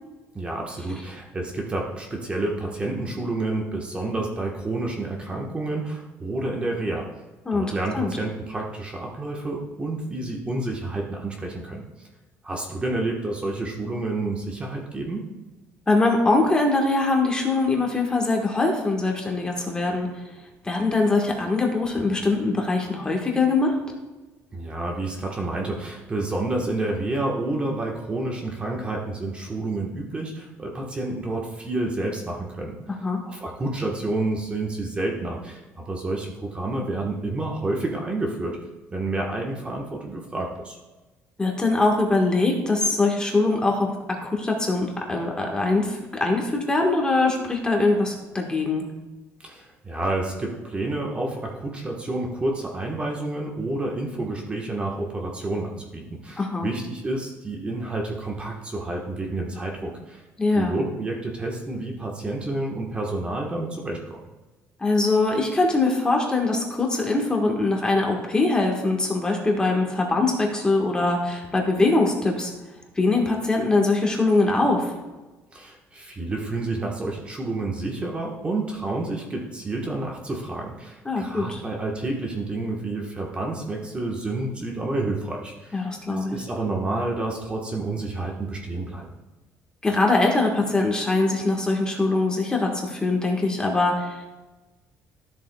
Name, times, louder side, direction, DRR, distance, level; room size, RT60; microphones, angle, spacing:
voice 1, 0.3-7.1 7.5-11.8 12.4-15.2 24.5-32.8 33.2-38.6 38.9-40.8 49.4-60.2 60.5-64.2 75.5-85.9 86.2-89.1, right 2 dB, 20° right, 0 dB, 1.2 m, -29 dB
voice 2, 7.4-8.1 15.9-20.1 20.6-23.8 33.0-33.2 41.4-43.9 44.2-48.8 56.4-56.7 60.4-60.8 64.8-72.5 73.0-74.9 81.0-81.6 85.7-86.3 89.8-94.3, left 3 dB, 15° left, 1 dB, 1.4 m, -22 dB
13.0 x 7.3 x 2.3 m, 1.2 s
cardioid pair, 135°, 5 cm